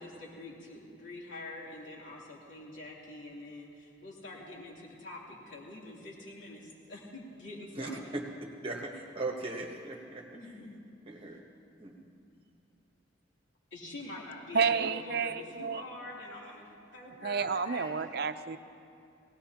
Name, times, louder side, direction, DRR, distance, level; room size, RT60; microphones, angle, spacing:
voice 1, 0.0-8.1 10.3-10.8 13.7-18.1, left 2 dB, 75° left, -5 dB, 3.2 m, -45 dB
voice 2, 8.6-10.2 11.1-11.4 11.8-12.1, right 2 dB, 30° right, 0 dB, 1.2 m, -38 dB
voice 3, 14.5-15.8 17.2-18.6, right 6 dB, 55° right, 10 dB, 0.5 m, -30 dB
21.0 x 18.0 x 2.9 m, 2.5 s
head